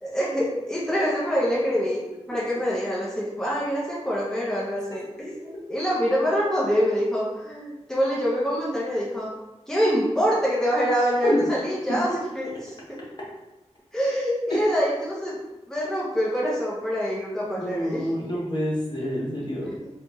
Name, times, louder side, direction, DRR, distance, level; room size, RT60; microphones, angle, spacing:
voice 1, 0.0-9.3 9.7-13.0 13.9-15.4 15.7-18.1 19.6-19.9, equal, 5° left, -6 dB, 1.0 m, -25 dB
voice 2, 17.5-19.7, equal, 40° left, -5 dB, 1.2 m, -27 dB
4.1 x 2.6 x 4.0 m, 1.0 s
wide cardioid pair, 95°, 12 cm